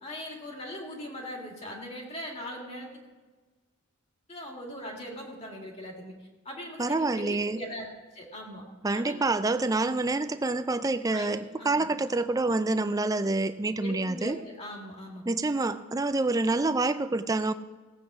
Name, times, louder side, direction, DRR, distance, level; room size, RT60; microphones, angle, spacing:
voice 1, 0.0-2.9 4.3-6.1 6.4-8.6 8.9-9.2 11.1-11.9 13.8-15.2, equal, 30° left, 0 dB, 2.2 m, -40 dB
voice 2, 6.8-7.6 8.8-14.4 15.3-17.5, right 2 dB, 15° right, 11 dB, 0.4 m, -27 dB
17.0 x 8.3 x 4.9 m, 1.3 s
head